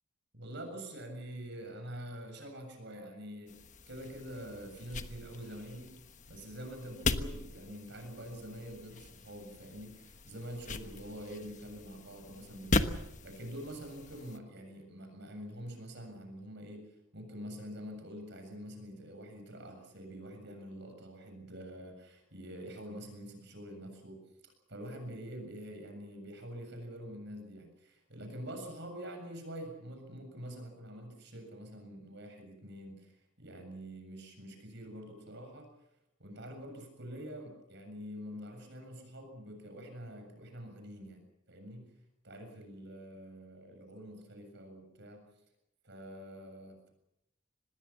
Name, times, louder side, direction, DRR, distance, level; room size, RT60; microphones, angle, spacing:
voice 1, 0.3-3.6 3.9-6.0 6.3-24.2 24.7-35.7 36.2-42.0 42.2-45.2 45.8-46.9, equal, 55° right, 5 dB, 7.4 m, -46 dB
sound 1, 3.5-14.4, left 2 dB, 35° left, 1.3 m, -39 dB
25.5 x 20.5 x 7.3 m, 0.84 s
head